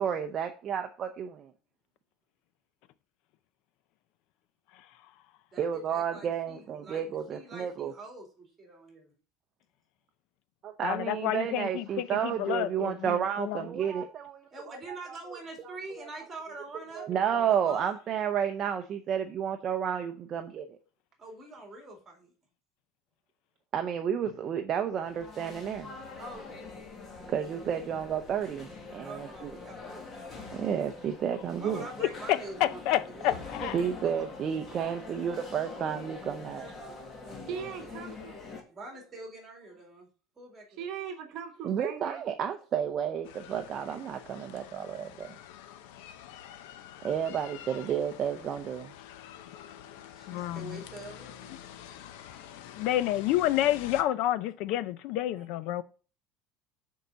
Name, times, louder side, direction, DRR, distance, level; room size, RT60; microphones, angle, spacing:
voice 1, 0.0-1.5 5.6-7.9 10.6-14.4 14.7-14.8 15.9-16.0 17.0-20.8 23.7-25.9 27.3-29.5 30.5-31.8 33.7-36.7 41.6-45.3 47.0-48.9, right 8 dB, 30° right, 0.6 m, -31 dB
voice 2, 5.5-9.0 14.5-17.1 17.4-17.9 21.2-22.3 26.2-26.9 29.0-30.4 31.5-34.3 37.2-40.1 40.4-40.9 49.9-53.1 55.3-55.4, right 2 dB, 15° right, 2.8 m, -46 dB
voice 3, 10.8-13.7 32.0-33.8 50.3-50.8 52.8-55.8, left 13 dB, 55° left, 0.4 m, -29 dB
sound 1, 25.0-38.6, left 3 dB, 25° left, 1.6 m, -44 dB
voice 4, 36.2-37.0 37.5-38.4 40.8-42.2, right 7 dB, 45° right, 1.2 m, -40 dB
sound 2, 43.2-54.0, left 10 dB, 85° left, 0.8 m, -47 dB
6.6 x 4.7 x 6.8 m
cardioid pair, 175°, 0 cm